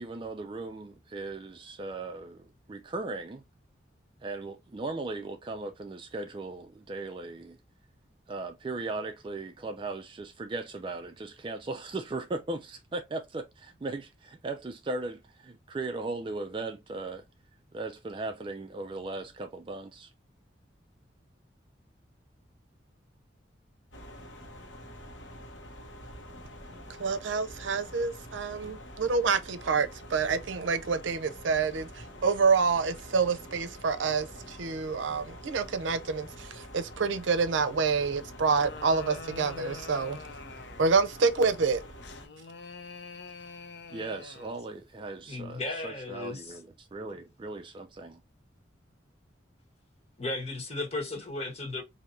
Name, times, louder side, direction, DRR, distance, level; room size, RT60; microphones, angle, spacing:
voice 1, 0.0-3.4 4.2-7.6 8.3-17.2 17.7-20.1 43.9-48.2, right 2 dB, 25° right, 0.3 m, -37 dB
sound 1, 23.9-42.3, equal, 80° left, 1.2 m, -47 dB
voice 2, 27.0-40.2 40.8-41.8, right 5 dB, 80° right, 0.5 m, -27 dB
sound 2, 38.2-41.0 42.0-44.6, left 4 dB, 60° left, 0.5 m, -45 dB
voice 3, 45.3-46.6 50.2-51.8, left 2 dB, 35° left, 1.2 m, -35 dB
4.5 x 2.7 x 2.5 m
head